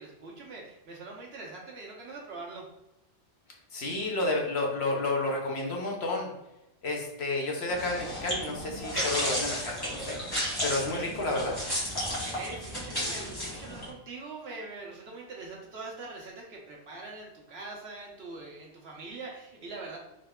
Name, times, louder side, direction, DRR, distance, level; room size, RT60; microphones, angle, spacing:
voice 1, 0.0-2.6 12.0-20.0, right 3 dB, 60° right, -2 dB, 1.2 m, -43 dB
voice 2, 3.7-6.3 6.8-10.2 10.6-11.6, left 2 dB, 60° left, 0 dB, 1.1 m, -31 dB
sound 1, 7.7-13.9, equal, 20° left, 1.6 m, -33 dB
3.9 x 3.3 x 3.6 m, 0.90 s
omnidirectional pair, 1.2 m